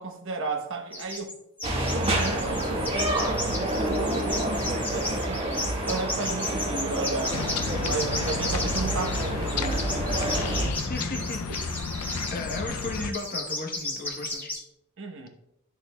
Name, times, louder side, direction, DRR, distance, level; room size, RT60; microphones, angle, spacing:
voice 1, 0.0-1.4 1.9-7.5 7.8-10.4 11.5-11.6 15.0-15.3, right 3 dB, 60° right, 1.0 m, -34 dB
sound 1, 0.9-1.3 1.6-14.6, left 2 dB, 10° left, 1.6 m, -34 dB
sound 2, 1.6-10.7, right 1 dB, 25° right, 1.2 m, -28 dB
sound 3, 7.3-13.1, left 5 dB, 80° left, 0.5 m, -33 dB
voice 2, 10.7-11.4 12.0-14.5, left 2 dB, 40° left, 1.0 m, -35 dB
10.5 x 6.4 x 2.3 m
head